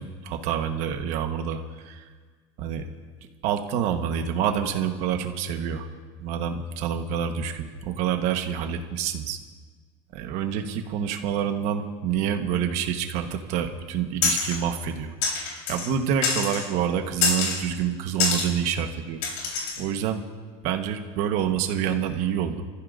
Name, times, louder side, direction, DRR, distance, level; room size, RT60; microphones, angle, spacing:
voice 1, 0.0-2.1 2.6-2.9 3.4-5.9 6.2-9.4 10.1-15.1 15.7-19.2 19.8-20.3 20.6-22.6, right 8 dB, 55° right, 6 dB, 1.4 m, -27 dB
sound 1, 14.2-14.6 15.2-15.9 16.2-16.7 17.2-17.6 18.2-18.5 19.2-19.8, left 5 dB, 75° left, 4.3 m, -25 dB
28.5 x 15.0 x 2.7 m, 1.5 s
cardioid pair, 160°, 14 cm